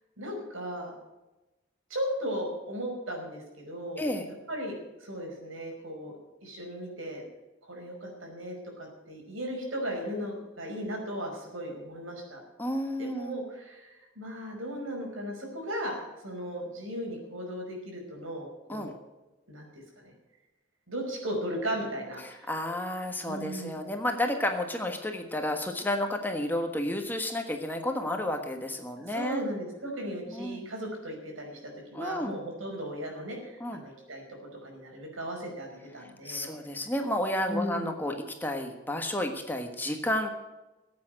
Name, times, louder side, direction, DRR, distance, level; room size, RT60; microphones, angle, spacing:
voice 1, 0.2-0.9 1.9-4.1 4.5-6.1 6.4-7.2 7.7-12.4 13.0-16.0 16.2-18.9 19.5-20.1 20.9-22.5 23.2-23.8 29.0-31.6 31.9-34.2 34.6-36.5 37.5-37.9, equal, 90° right, 1 dB, 5.4 m, -36 dB
voice 2, 12.6-13.4 18.7-18.9 22.2-29.4 30.3-30.7 31.9-32.3 33.6-33.8 36.2-40.3, left 1 dB, 10° left, 4 dB, 1.4 m, -31 dB
15.5 x 8.7 x 7.7 m, 1.0 s
head